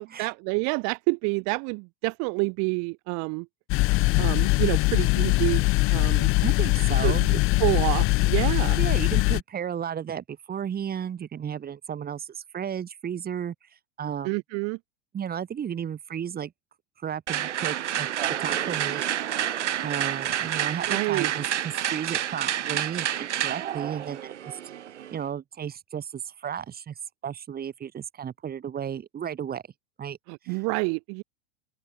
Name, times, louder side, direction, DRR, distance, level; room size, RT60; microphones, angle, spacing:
voice 1, 0.0-3.5 4.2-5.6 5.9-6.3 7.0-7.2 7.6-8.8 14.2-14.8 20.9-21.3 30.3-31.2, right 33 dB, 50° right, 1.7 m, -28 dB
sound 1, 3.7-9.4, left 23 dB, 40° left, 0.5 m, -22 dB
voice 2, 6.4-7.4 8.8-13.5 14.0-14.4 15.1-16.5 17.0-18.1 18.4-19.0 19.8-24.6 25.1-26.9 27.2-29.6 30.0-30.2 30.4-30.6, right 8 dB, 25° right, 3.9 m, -33 dB
sound 2, 17.3-25.2, right 10 dB, 90° right, 1.9 m, -29 dB
open air
hypercardioid pair, 110°, 34 cm